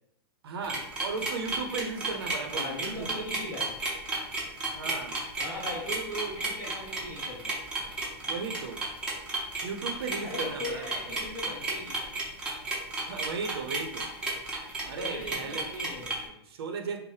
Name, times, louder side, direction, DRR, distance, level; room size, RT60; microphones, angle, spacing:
voice 1, 0.4-3.1 4.7-5.1 8.3-8.8 9.6-10.9 13.1-14.0 14.8-15.7 16.5-17.0, right 4 dB, 65° right, 5 dB, 0.6 m, -36 dB
sound 1, 0.6-16.2, right 3 dB, 5° right, 0.5 m, -32 dB
voice 2, 2.5-3.7 5.4-7.6 10.2-12.2 15.0-16.4, equal, 20° left, -6 dB, 1.3 m, -39 dB
5.4 x 2.0 x 3.2 m, 0.78 s
supercardioid pair, 175°, 14 cm